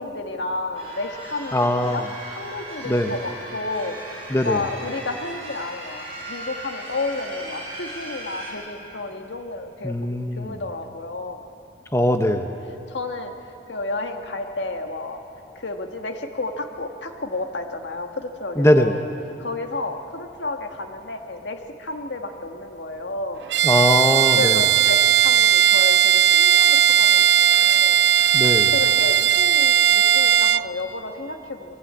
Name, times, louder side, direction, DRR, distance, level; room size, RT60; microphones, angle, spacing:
voice 1, 0.0-11.4 12.9-13.3 13.7-15.2 15.6-19.0 19.4-23.4 24.4-26.7 27.0-28.0 28.7-31.8, left 2 dB, 90° left, 4 dB, 1.7 m, -31 dB
sound 1, 0.7-8.5, right 1 dB, 35° right, 6.2 m, -37 dB
voice 2, 1.5-2.1 2.8-3.1 4.3-4.6 9.8-10.6 11.9-12.6 18.6-19.0 23.6-24.7 28.3-28.7, left 1 dB, 15° left, 5 dB, 0.8 m, -21 dB
Bowed string instrument, 23.5-30.7, right 10 dB, 75° right, 0.4 m, -17 dB
21.0 x 15.0 x 8.8 m, 2.9 s
head